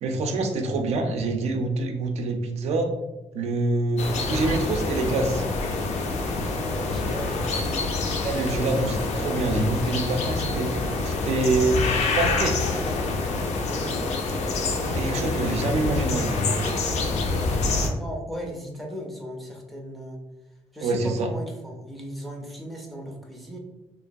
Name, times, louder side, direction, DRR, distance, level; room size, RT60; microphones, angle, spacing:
voice 1, 0.0-2.9 3.3-5.4 7.6-7.8 8.2-11.8 12.2-12.6 14.9-16.7 20.8-21.3, right 2 dB, 70° right, 4 dB, 0.4 m, -26 dB
sound 1, 4.0-17.9, left 3 dB, 75° left, 0.4 m, -26 dB
voice 2, 6.6-7.7 13.6-14.2 18.0-20.2 20.7-23.6, equal, ahead, -1 dB, 0.4 m, -37 dB
3.0 x 2.2 x 2.5 m, 1.0 s
wide cardioid pair, 170°, 11 cm